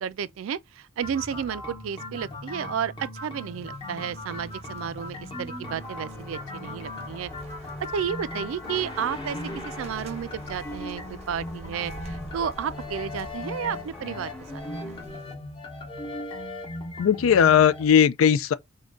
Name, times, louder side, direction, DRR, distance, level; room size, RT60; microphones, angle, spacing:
voice 1, 0.0-7.3 7.9-15.2, right 8 dB, 80° right, 0.3 m, -32 dB
sound 1, 1.0-17.9, left 2 dB, 25° left, 0.9 m, -38 dB
sound 2, 3.4-15.4, right 1 dB, 35° right, 0.6 m, -49 dB
sound 3, 5.6-15.0, left 1 dB, 5° left, 1.0 m, -46 dB
voice 2, 17.0-18.5, left 8 dB, 90° left, 0.4 m, -18 dB
3.7 x 2.2 x 3.6 m
head